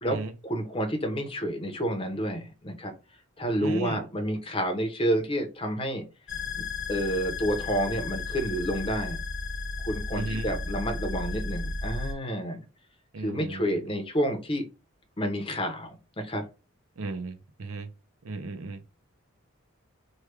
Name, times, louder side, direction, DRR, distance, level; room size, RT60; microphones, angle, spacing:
voice 1, 0.0-2.9 3.4-6.0 6.9-9.2 9.8-12.6 13.2-14.6 15.2-16.4, equal, 25° left, 0.7 m, -29 dB
voice 2, 3.6-4.0 10.1-10.5 13.1-13.7 17.0-17.9 18.2-18.8, right 3 dB, 80° right, 0.6 m, -35 dB
sound 1, 6.3-12.1, left 3 dB, 55° left, 0.9 m, -34 dB
3.2 x 2.2 x 3.3 m
head